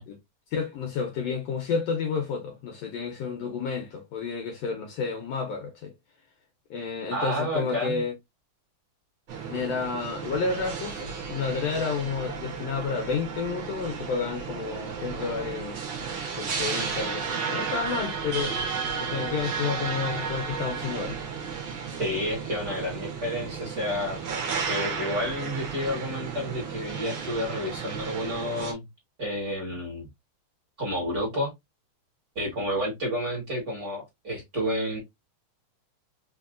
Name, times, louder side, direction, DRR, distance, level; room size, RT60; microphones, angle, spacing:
voice 1, 0.5-5.9 6.7-8.1 9.5-15.8 16.4-18.6 18.9-21.2, left 5 dB, 75° left, 1.6 m, -30 dB
voice 2, 7.1-8.0 22.0-24.2 24.7-28.9 29.2-30.1 30.8-31.5 32.3-35.0, equal, 40° right, 1.5 m, -30 dB
sound 1, 9.3-28.7, right 6 dB, 65° right, 1.3 m, -33 dB
4.5 x 2.8 x 2.4 m
omnidirectional pair, 3.5 m